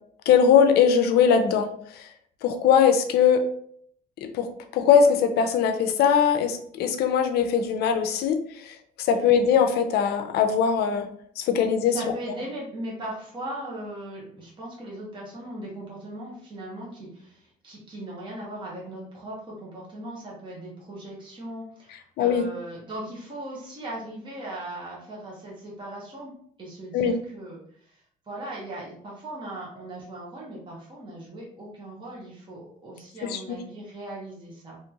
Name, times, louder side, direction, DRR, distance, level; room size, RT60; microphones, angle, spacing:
voice 1, 0.3-1.7 1.9-2.1 2.4-3.4 4.2-4.5 4.7-8.4 8.7-11.1 11.4-12.0 22.2-22.4 26.9-27.1 33.2-33.6, left 7 dB, 75° left, 6 dB, 0.5 m, -21 dB
voice 2, 11.9-26.3 26.6-27.6 28.3-34.8, right 1 dB, 30° right, -4 dB, 1.1 m, -38 dB
2.9 x 2.9 x 2.3 m, 0.63 s
cardioid pair, 110°, 17 cm